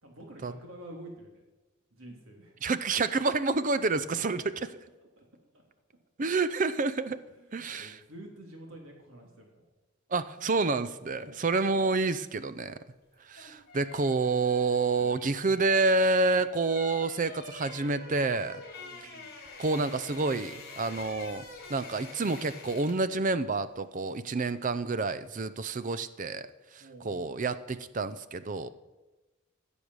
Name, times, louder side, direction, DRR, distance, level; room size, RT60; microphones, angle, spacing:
voice 1, 0.0-1.4 1.9-2.6 3.9-4.3 5.1-5.2 5.5-5.6 7.4-9.7 11.1-11.5 14.9-15.1 18.8-19.3 26.8-27.4 28.4-28.6, right 1 dB, 75° right, 1 dB, 3.1 m, -49 dB
voice 2, 2.6-4.4 6.2-7.2 7.5-8.0 10.1-12.8 13.2-18.6 19.6-21.4 21.7-28.7, right 3 dB, 40° right, 14 dB, 0.5 m, -28 dB
sound 1, 13.1-23.1 23.4-23.6, left 4 dB, 50° left, 2.9 m, -46 dB
15.0 x 7.0 x 6.3 m, 1.1 s
head